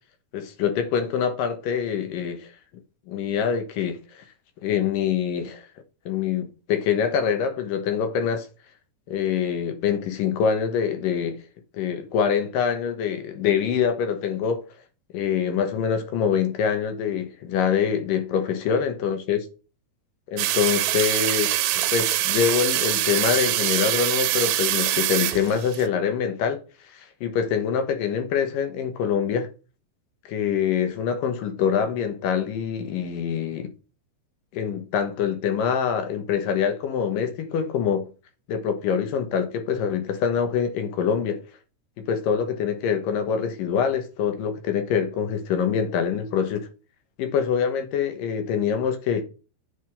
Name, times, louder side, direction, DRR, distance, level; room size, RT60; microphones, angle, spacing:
voice 1, 0.3-2.5 3.1-4.2 4.6-5.7 6.1-8.5 9.1-11.4 11.7-14.6 15.1-19.5 20.3-26.6 26.8-29.5 30.3-33.7 34.5-38.1 38.5-41.4 42.0-46.7 47.2-49.2, left 7 dB, 80° left, 2.9 m, -25 dB
sound 1, 20.4-25.9, right 13 dB, 85° right, 2.5 m, -24 dB
8.0 x 4.8 x 5.2 m
omnidirectional pair, 3.9 m